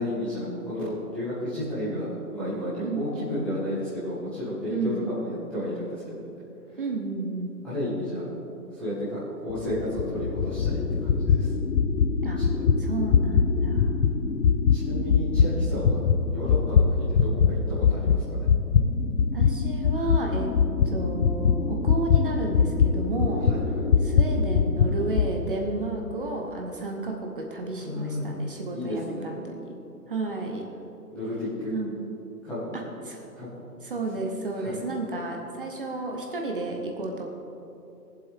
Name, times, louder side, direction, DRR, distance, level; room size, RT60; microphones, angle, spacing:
voice 1, 0.0-6.1 6.7-6.8 7.6-8.2 8.7-11.5 12.4-12.7 14.7-16.0 16.3-18.5 23.4-23.8 27.8-28.2 28.7-29.3 31.1-31.7 32.4-32.7 33.3-33.5 34.2-34.3 34.6-34.8, left 1 dB, ahead, -13 dB, 1.1 m, -32 dB
voice 2, 4.7-5.0 6.8-7.6 12.2-12.4 12.8-14.1 19.3-20.5 20.8-23.4 24.0-29.7 30.1-30.6 31.7-32.0 32.7-33.3 33.8-37.3, right 2 dB, 35° right, 1 dB, 1.0 m, -32 dB
sound 1, 9.5-17.5 17.8-25.3, left 6 dB, 75° left, 1.0 m, -23 dB
20.5 x 7.6 x 3.6 m, 2.8 s
hypercardioid pair, 170°, 48 cm